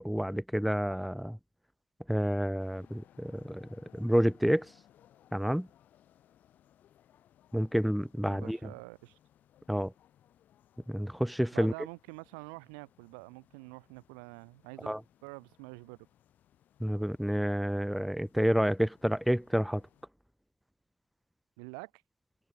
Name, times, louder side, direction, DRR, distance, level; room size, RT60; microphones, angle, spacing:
voice 1, 0.0-1.4 2.1-4.7 5.3-5.7 7.5-8.6 9.7-9.9 10.9-11.7 14.9-15.0 16.8-19.8, equal, ahead, 0.4 m, -29 dB
sound 1, 2.6-20.1, left 11 dB, 50° left, 4.9 m, -64 dB
voice 2, 8.3-9.2 11.5-14.9 15.2-16.0 21.6-21.9, right 38 dB, 80° right, 2.1 m, -46 dB
supercardioid pair, 95°, 4 cm